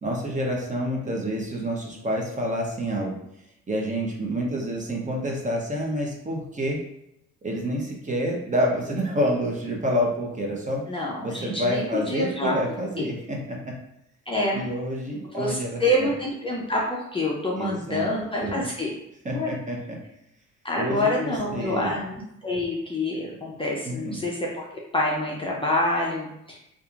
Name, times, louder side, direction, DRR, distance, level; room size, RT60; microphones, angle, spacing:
voice 1, 0.0-3.1 3.7-6.8 7.4-10.8 11.2-13.7 14.5-16.1 17.6-18.1 18.4-18.7 19.2-20.0 20.7-21.9 23.8-24.2, equal, 25° right, -1 dB, 0.7 m, -28 dB
voice 2, 10.9-12.6 14.3-14.6 15.3-18.9 19.3-19.5 20.6-24.7 24.9-26.6, left 1 dB, 20° left, -3 dB, 0.4 m, -27 dB
2.7 x 2.4 x 2.4 m, 0.80 s
cardioid pair, 90°, 30 cm